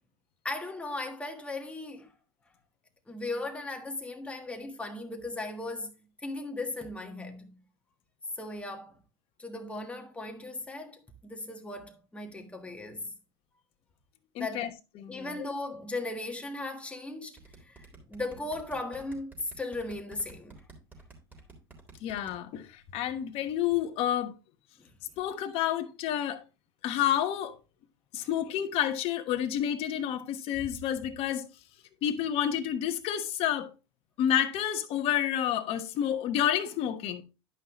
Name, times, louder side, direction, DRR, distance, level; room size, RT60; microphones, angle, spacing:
voice 1, 0.4-2.1 3.1-7.6 8.3-9.0 9.4-13.1 14.4-14.8 15.1-20.7 24.8-24.9 28.2-28.3, left 2 dB, 10° left, 1.4 m, -37 dB
voice 2, 14.3-14.7 15.0-15.4 22.0-24.3 25.2-26.4 26.8-27.5 28.1-31.5 32.0-33.7 34.2-37.2, left 10 dB, 45° left, 1.2 m, -29 dB
sound 1, 17.4-22.3, right 5 dB, 15° right, 3.5 m, -51 dB
11.0 x 5.7 x 3.0 m
hypercardioid pair, 105°, 13 cm